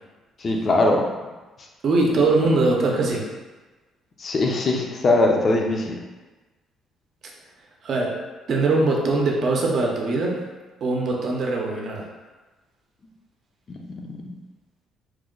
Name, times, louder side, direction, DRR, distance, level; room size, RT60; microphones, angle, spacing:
voice 1, 0.4-1.1 4.2-6.0 13.7-14.3, left 2 dB, 40° left, 1 dB, 0.5 m, -21 dB
voice 2, 1.8-3.3 7.8-8.2 8.5-10.4 10.8-12.1, right 3 dB, 55° right, -1 dB, 0.6 m, -21 dB
3.1 x 2.1 x 3.7 m, 1.2 s
cardioid pair, 115°, 0 cm